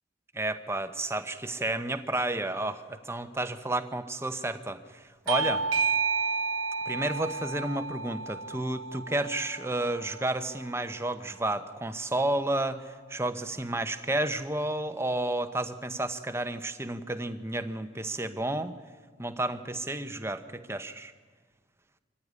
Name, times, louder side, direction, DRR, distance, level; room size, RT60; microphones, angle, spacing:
voice 1, 0.3-5.6 6.9-18.7 19.2-21.1, right 1 dB, 15° right, 9 dB, 1.0 m, -31 dB
Bell / Doorbell, 5.3-10.5, right 4 dB, 90° right, 0.8 m, -31 dB
24.5 x 15.5 x 9.6 m, 1.5 s
head